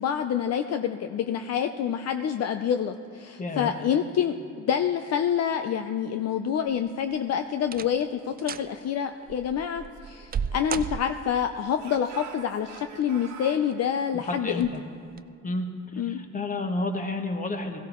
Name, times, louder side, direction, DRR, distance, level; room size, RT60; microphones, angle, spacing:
voice 1, 0.0-14.7 16.0-16.2, left 8 dB, 55° left, 8 dB, 0.6 m, -27 dB
voice 2, 3.4-3.7 14.3-14.8 15.4-15.7 16.1-17.8, left 2 dB, 25° left, 5 dB, 1.3 m, -30 dB
sound 1, 6.7-7.1 7.6-8.1 8.4-8.7 9.3-11.5 12.7-13.3 13.7-13.8 14.5-14.8 15.1-15.2, right 7 dB, 30° right, 0.4 m, -35 dB
Speech / Shout, 9.8-11.3 11.8-13.7, right 6 dB, 75° right, 1.4 m, -46 dB
17.0 x 15.5 x 3.1 m, 2.3 s
cardioid pair, 90°, 30 cm